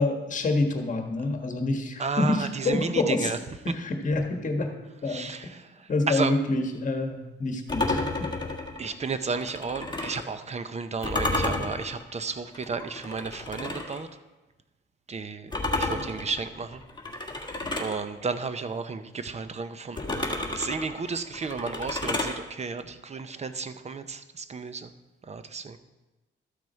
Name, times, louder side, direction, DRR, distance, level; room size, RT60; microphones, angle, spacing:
voice 1, 0.0-3.3 3.6-4.7 5.0-5.3 5.9-8.1, left 2 dB, 40° left, 4 dB, 1.5 m, -27 dB
voice 2, 2.0-3.4 3.7-3.8 5.1-6.3 8.8-14.1 15.1-16.8 17.7-20.0 20.5-24.9 25.2-25.8, right 5 dB, 35° right, 11 dB, 0.8 m, -33 dB
sound 1, 7.7-10.3 11.0-14.0 15.5-18.0 20.0-22.4, left 2 dB, 20° left, 1.6 m, -31 dB
13.0 x 6.1 x 4.5 m, 1.1 s
cardioid pair, 90°, 20 cm